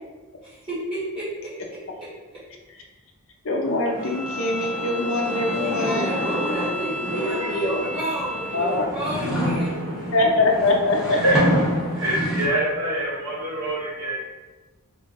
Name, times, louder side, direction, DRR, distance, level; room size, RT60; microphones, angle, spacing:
voice 1, 0.4-1.8 5.1-9.7, right 1 dB, 25° right, -12 dB, 1.1 m, -30 dB
voice 2, 3.4-6.1 8.5-8.9 9.1-9.6 10.1-11.4, left 2 dB, 60° left, 1 dB, 0.7 m, -23 dB
sound 1, 3.6-8.0 8.6-12.5, equal, ahead, 1.3 m, -28 dB
Bowed string instrument, 4.0-8.8, left 1 dB, 25° left, 0.9 m, -33 dB
voice 3, 6.8-10.2 11.1-11.4 11.7-14.2, right 1 dB, 75° right, -7 dB, 0.8 m, -28 dB
4.3 x 3.6 x 2.6 m, 1.2 s
head